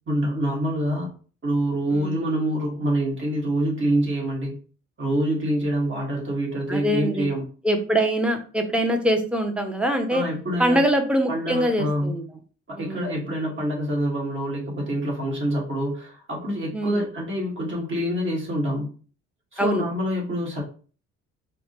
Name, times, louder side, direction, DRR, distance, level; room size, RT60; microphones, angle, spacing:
voice 1, 0.1-1.1 1.4-4.6 5.0-7.4 10.1-10.8 11.3-12.2 12.7-18.9 19.5-20.6, right 1 dB, 40° right, -3 dB, 1.7 m, -26 dB
voice 2, 6.7-7.3 7.6-10.3 10.6-12.2 12.8-13.2 16.7-17.0 19.6-19.8, right 1 dB, 5° right, 4 dB, 0.7 m, -23 dB
4.2 x 2.2 x 2.9 m, 0.39 s
cardioid pair, 90°, 30 cm